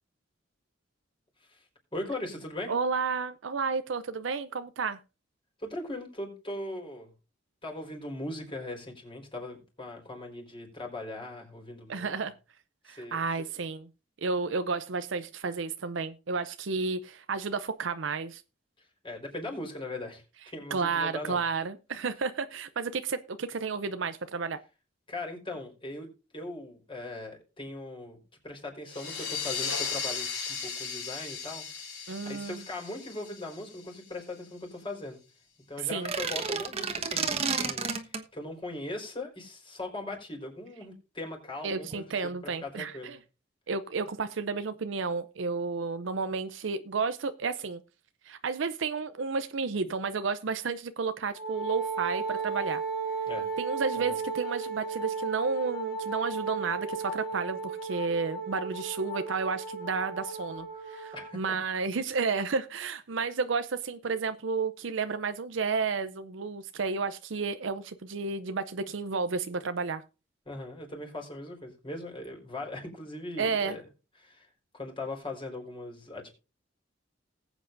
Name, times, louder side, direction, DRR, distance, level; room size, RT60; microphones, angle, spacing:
voice 1, 1.9-2.7 5.6-7.1 7.6-12.1 12.9-13.2 18.8-21.4 25.1-26.1 26.3-31.6 32.2-35.2 35.7-43.2 53.3-53.5 54.0-54.2 61.1-61.6 70.5-73.8 74.2-74.5 74.7-76.3, left 2 dB, 25° left, 4.4 m, -39 dB
voice 2, 2.7-5.0 11.9-12.3 12.8-13.9 14.2-18.4 20.7-24.6 32.1-32.6 35.9-36.1 41.6-43.2 43.7-47.8 48.2-52.8 53.6-70.0 73.4-73.8, right 4 dB, 70° right, 0.6 m, -32 dB
sound 1, 28.9-34.2, left 6 dB, 80° left, 4.8 m, -36 dB
sound 2, 35.9-38.3, right 5 dB, 35° right, 1.3 m, -31 dB
Wind instrument woodwind instrument, 51.4-61.3, right 4 dB, 55° left, 2.7 m, -35 dB
20.0 x 8.1 x 2.6 m
head